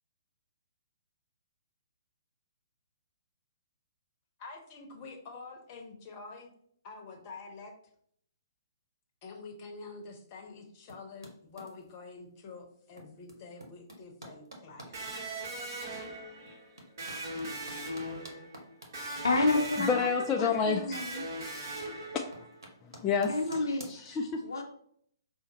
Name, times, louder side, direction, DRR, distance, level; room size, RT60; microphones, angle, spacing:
voice 1, 4.4-6.5 6.8-7.7 9.2-15.3, left 4 dB, 35° left, 3 dB, 0.8 m, -47 dB
sound 1, 10.9-12.0 12.9-14.9 15.5-15.6 16.2-20.8 21.0-21.6 21.9-24.0, right 1 dB, 75° right, 0.9 m, -50 dB
Electric guitar, 14.9-22.6, right 1 dB, 50° right, 1.1 m, -40 dB
voice 2, 19.2-20.1 20.4-21.2 23.3-23.9 24.4-24.6, left 2 dB, 75° left, 4 dB, 0.6 m, -29 dB
voice 3, 19.8-21.1 22.1-22.2 22.8-23.3 23.9-24.4, left 5 dB, 20° left, 1 dB, 0.3 m, -29 dB
5.0 x 2.1 x 2.9 m, 0.65 s
figure-of-eight pair, 125°, 2 cm